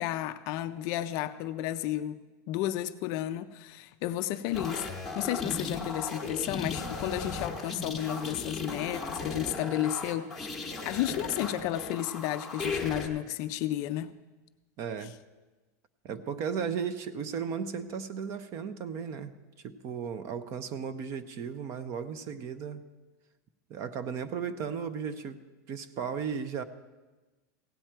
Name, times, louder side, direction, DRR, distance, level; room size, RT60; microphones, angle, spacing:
voice 1, 0.0-2.2 2.5-4.9 5.2-10.4 10.8-14.1, left 13 dB, 35° left, 10 dB, 0.4 m, -32 dB
sound 1, 4.5-13.1, left 3 dB, ahead, 1.1 m, -36 dB
voice 2, 14.8-15.1 16.0-19.3 19.6-22.8 23.7-25.4 25.7-26.6, right 6 dB, 30° right, 13 dB, 0.5 m, -35 dB
16.5 x 8.8 x 4.5 m, 1.2 s
supercardioid pair, 170°, 9 cm